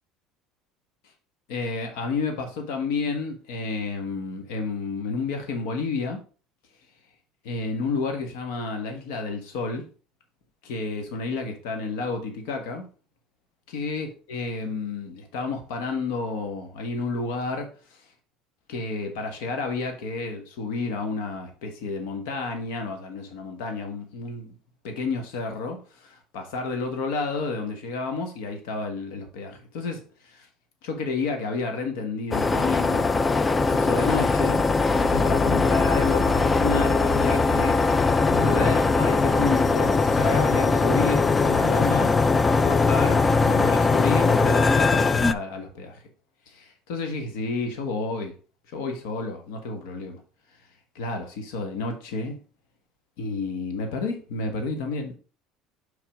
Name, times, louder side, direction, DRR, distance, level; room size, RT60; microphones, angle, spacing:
voice 1, 1.5-6.2 7.4-9.8 10.6-12.9 13.7-17.7 18.7-24.6 24.8-30.5 30.8-33.1 33.6-34.6 34.9-37.8 38.3-42.1 42.6-46.0 46.5-48.3 48.7-50.2 50.9-52.4 53.2-55.2, left 4 dB, 85° left, 1.3 m, -30 dB
sound 1, 32.3-45.3, left 4 dB, 15° left, 0.3 m, -21 dB
6.1 x 3.9 x 4.8 m
cardioid pair, 140°, 0 cm